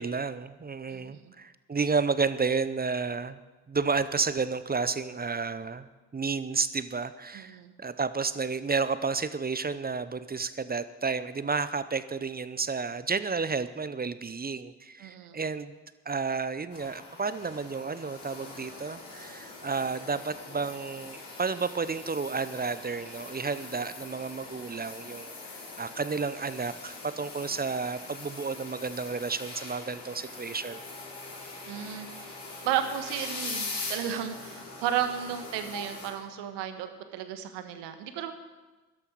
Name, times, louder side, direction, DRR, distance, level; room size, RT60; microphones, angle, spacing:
voice 1, 0.0-3.4 3.7-5.9 6.1-15.7 16.1-25.3 25.8-30.8, right 4 dB, 20° right, 14 dB, 0.8 m, -31 dB
voice 2, 0.9-1.3 7.3-7.7 15.0-15.4 31.7-32.1 32.6-38.3, right 10 dB, 65° right, 8 dB, 1.4 m, -33 dB
sound 1, 16.7-36.1, left 3 dB, 60° left, 5.4 m, -42 dB
Synth sequence, 30.6-37.1, equal, 15° left, 3.1 m, -50 dB
16.5 x 12.5 x 4.7 m, 1.2 s
figure-of-eight pair, 40°, 45 cm